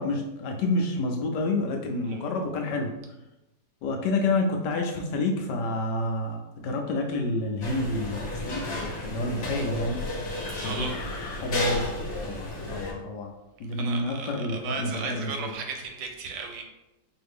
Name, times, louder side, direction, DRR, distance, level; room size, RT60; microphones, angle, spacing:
voice 1, 0.0-2.9 3.8-10.0 10.6-13.3 13.6-15.5, left 2 dB, 75° left, 3 dB, 1.1 m, -29 dB
sound 1, 7.6-12.9, left 1 dB, 45° left, 1.3 m, -32 dB
voice 2, 10.6-10.9 13.8-16.6, right 5 dB, 80° right, 3 dB, 1.4 m, -35 dB
4.7 x 2.6 x 3.4 m, 0.97 s
omnidirectional pair, 2.0 m